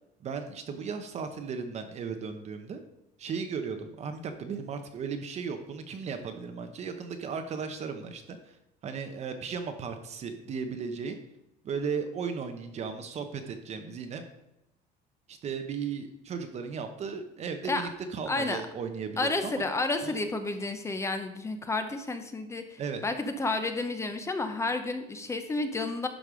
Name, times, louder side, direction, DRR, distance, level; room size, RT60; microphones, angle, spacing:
voice 1, 0.2-2.8 3.2-8.6 8.8-11.2 11.6-14.2 15.3-19.6 20.0-20.2 22.8-23.0, right 5 dB, 40° right, 6 dB, 0.9 m, -36 dB
voice 2, 18.3-18.6 19.2-26.1, left 2 dB, 15° left, 7 dB, 0.8 m, -31 dB
11.0 x 5.3 x 5.0 m, 0.88 s
cardioid pair, 150°, 18 cm